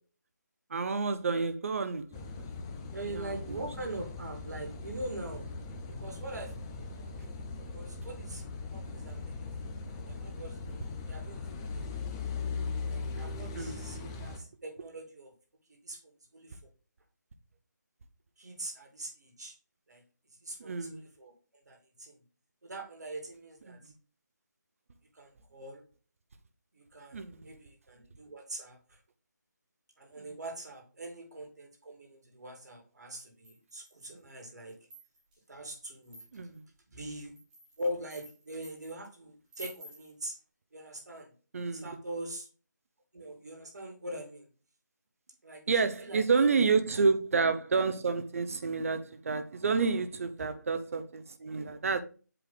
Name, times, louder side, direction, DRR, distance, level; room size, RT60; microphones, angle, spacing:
voice 1, 0.7-2.0 3.1-3.6 13.5-13.8 20.6-21.0 23.7-23.8 27.1-27.5 30.2-30.3 36.3-36.6 41.5-42.0 45.7-52.0, right 4 dB, 50° right, 0.8 m, -29 dB
Car passing by / Idling / Accelerating revving vroom, 2.1-14.4, left 4 dB, 15° left, 0.5 m, -39 dB
voice 2, 2.9-5.5 5.9-7.2 7.6-8.4 8.7-11.8 12.9-15.3 15.7-16.0 16.3-16.6 18.4-19.5 19.9-20.0 20.4-21.3 21.7-22.2 22.6-23.8 25.1-25.8 26.7-28.8 30.0-34.8 35.5-36.2 36.9-37.3 37.8-40.3 40.7-41.3 41.7-42.5 43.1-44.5 45.4-46.2 50.4-50.5, right 1 dB, 65° right, 2.3 m, -43 dB
sound 1, 33.4-34.2 34.7-35.4 36.0-36.6 37.2-38.9 39.5-40.1, right 1 dB, 10° right, 1.6 m, -51 dB
7.8 x 3.2 x 3.9 m
figure-of-eight pair, 155°, 10 cm